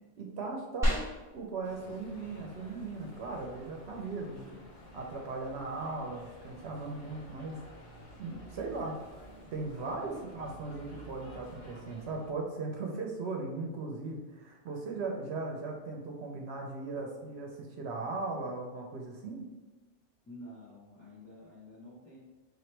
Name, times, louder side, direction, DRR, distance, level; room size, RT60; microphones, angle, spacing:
voice 1, 0.2-1.0 1.3-4.5 4.9-7.6 8.2-9.0 9.5-19.4, right 3 dB, 75° right, 1 dB, 0.8 m, -38 dB
sound 1, 0.8-10.8, equal, 5° right, 1.2 m, -41 dB
sound 2, 1.6-12.3, equal, 45° left, 1.1 m, -52 dB
voice 2, 3.9-4.6 10.0-10.4 20.3-22.2, left 1 dB, 15° left, -8 dB, 0.7 m, -50 dB
4.7 x 2.9 x 3.2 m, 1.2 s
omnidirectional pair, 1.2 m